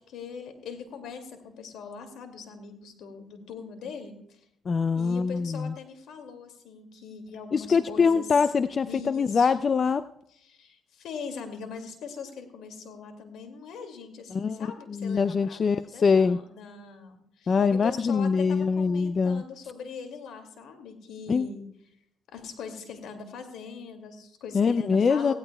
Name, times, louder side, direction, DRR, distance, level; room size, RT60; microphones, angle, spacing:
voice 1, 0.1-4.4 4.9-8.3 8.9-9.5 10.3-21.6 22.3-25.3, left 5 dB, 80° left, 6 dB, 2.3 m, -41 dB
voice 2, 4.7-5.7 7.5-10.0 14.3-16.4 17.5-19.4 21.3-21.5 24.5-25.3, left 5 dB, 45° left, 13 dB, 0.4 m, -24 dB
17.5 x 16.5 x 2.3 m, 0.74 s
cardioid pair, 90°, 0 cm